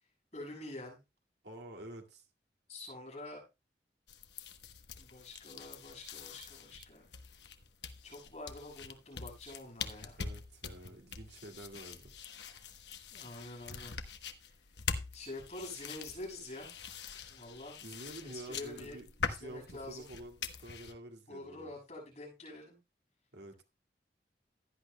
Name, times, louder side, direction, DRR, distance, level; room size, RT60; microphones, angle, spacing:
voice 1, 0.3-1.0 2.7-3.4 5.0-7.1 8.0-10.2 13.1-13.9 15.1-16.8 17.3-17.8 18.2-20.1 21.3-22.8, left 2 dB, 40° left, 6.7 m, -47 dB
voice 2, 1.4-2.3 10.2-12.1 17.1-17.3 17.8-19.1 19.4-21.7 23.3-23.6, right 1 dB, 90° right, 2.2 m, -49 dB
sound 1, 4.1-20.9, left 6 dB, 85° left, 1.0 m, -44 dB
16.0 x 11.0 x 2.2 m
head